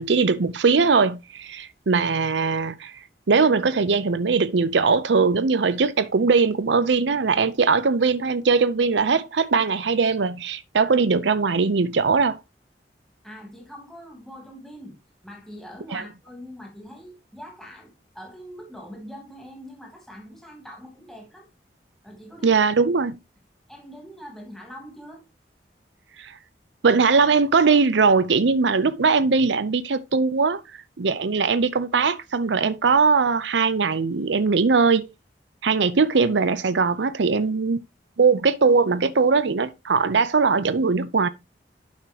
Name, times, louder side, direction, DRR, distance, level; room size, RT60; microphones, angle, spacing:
voice 1, 0.0-2.9 3.3-12.4 15.9-16.0 22.4-23.2 26.2-26.4 26.8-30.6 31.0-35.1 35.6-37.8 38.2-41.3, right 4 dB, 85° right, 0.6 m, -20 dB
voice 2, 13.2-15.0 15.2-17.9 18.1-21.5 22.0-22.6 23.7-25.2, equal, 5° left, 2.9 m, -42 dB
11.5 x 5.8 x 2.9 m
head